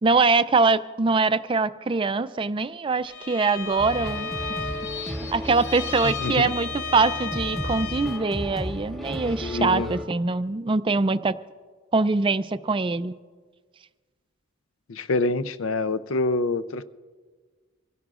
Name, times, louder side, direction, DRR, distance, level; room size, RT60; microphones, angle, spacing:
voice 1, 0.0-4.3 5.0-11.4 11.9-13.1, right 3 dB, 25° right, 0.4 m, -23 dB
Bowed string instrument, 3.0-8.3, left 5 dB, 55° left, 1.0 m, -34 dB
sound 1, 3.8-10.1, equal, ahead, 1.4 m, -34 dB
voice 2, 6.0-6.5 9.4-9.9 14.9-16.8, left 3 dB, 75° left, 0.6 m, -26 dB
25.5 x 17.0 x 2.5 m
head